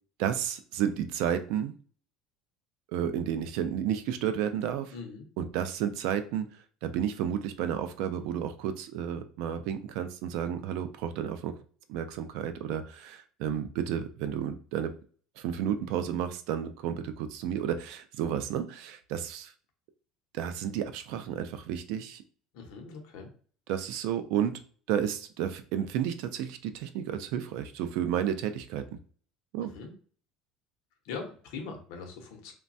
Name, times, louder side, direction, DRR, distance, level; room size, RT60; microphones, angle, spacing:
voice 1, 0.2-1.7 2.9-4.9 5.4-6.5 6.8-11.5 11.9-14.9 15.4-19.5 20.3-22.2 23.7-24.6 24.9-28.9 29.5-29.7, right 9 dB, 65° right, 10 dB, 0.3 m, -31 dB
voice 2, 4.9-5.3 22.5-23.3 29.6-29.9 31.0-32.5, left 4 dB, 70° left, 3 dB, 0.7 m, -41 dB
3.1 x 2.2 x 2.6 m, 0.43 s
cardioid pair, 160°, 0 cm